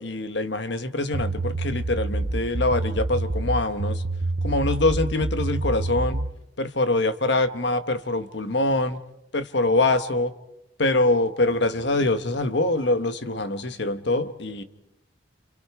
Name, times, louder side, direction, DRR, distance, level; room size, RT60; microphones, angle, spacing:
voice 1, 0.0-4.0 4.4-6.3 6.6-9.0 9.3-10.3 10.8-14.6, left 2 dB, 60° left, 10 dB, 1.2 m, -24 dB
sound 1, 1.1-6.3, right 2 dB, 50° right, 0.8 m, -27 dB
29.0 x 27.5 x 4.8 m, 0.89 s
head